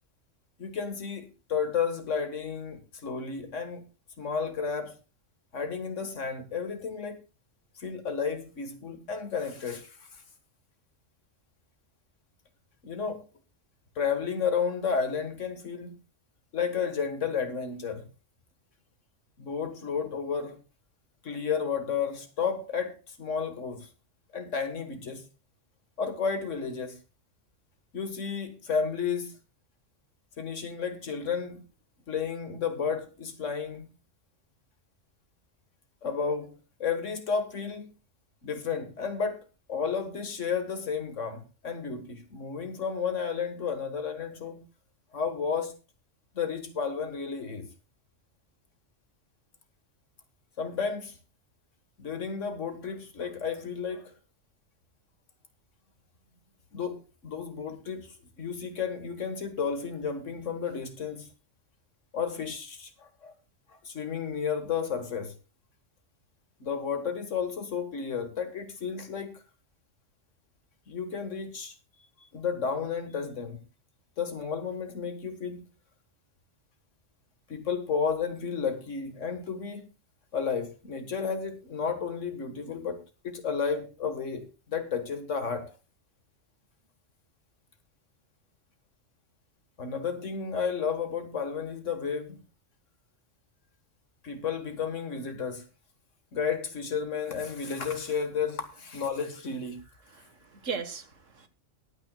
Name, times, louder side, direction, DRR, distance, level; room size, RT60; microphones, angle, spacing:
voice 1, 0.6-3.9 4.2-5.0 5.5-7.2 7.8-10.2 12.8-13.3 14.0-16.0 16.5-18.1 19.4-20.6 21.2-23.9 24.3-25.3 26.0-27.0 27.9-29.3 30.4-31.6 32.1-33.9 36.0-37.9 38.4-39.4 39.7-44.7 45.1-45.7 46.4-47.7 50.6-51.2 52.0-54.1 56.7-61.3 62.1-63.3 63.8-65.3 66.6-69.3 70.9-71.7 72.3-73.6 74.2-75.6 77.5-79.9 80.3-85.7 89.8-92.4 94.2-95.6 96.3-99.8, left 6 dB, 80° left, 2.0 m, -32 dB
voice 2, 100.2-101.5, right 5 dB, 90° right, 1.8 m, -37 dB
22.5 x 9.1 x 2.4 m
omnidirectional pair, 1.3 m